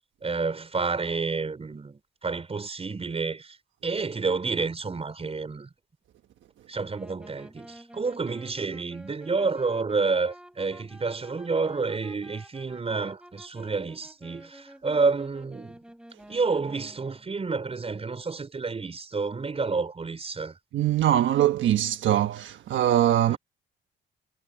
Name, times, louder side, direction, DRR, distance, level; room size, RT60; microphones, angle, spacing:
voice 1, 0.2-3.6 3.8-5.7 6.7-15.8 16.3-20.6 23.3-23.4, right 4 dB, 30° right, 5.3 m, -29 dB
sound 1, 6.9-17.3, right 1 dB, 5° right, 5.2 m, -50 dB
voice 2, 20.7-23.4, right 12 dB, 70° right, 1.3 m, -22 dB
cardioid pair, 90°, 20 cm